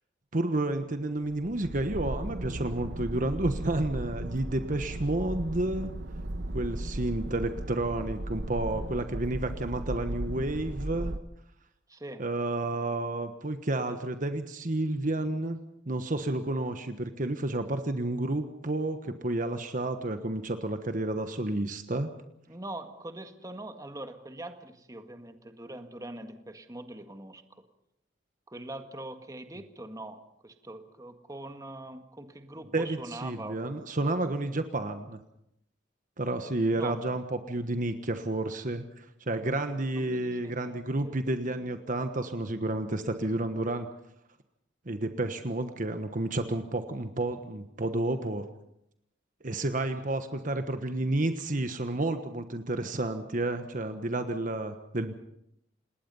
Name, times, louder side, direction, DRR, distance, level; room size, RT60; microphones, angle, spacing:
voice 1, 0.3-5.9 6.5-11.1 12.2-15.6 15.9-22.1 32.7-35.2 36.2-43.9 44.9-48.5 49.4-55.1, right 2 dB, 45° right, 8 dB, 1.3 m, -31 dB
sound 1, 1.2-11.2, right 1 dB, 65° right, 1.2 m, -36 dB
voice 2, 11.9-12.3 22.5-27.6 28.5-33.6 36.7-37.0 39.9-41.1, right 1 dB, 20° right, 7 dB, 1.7 m, -43 dB
27.5 x 20.0 x 5.5 m, 0.78 s
head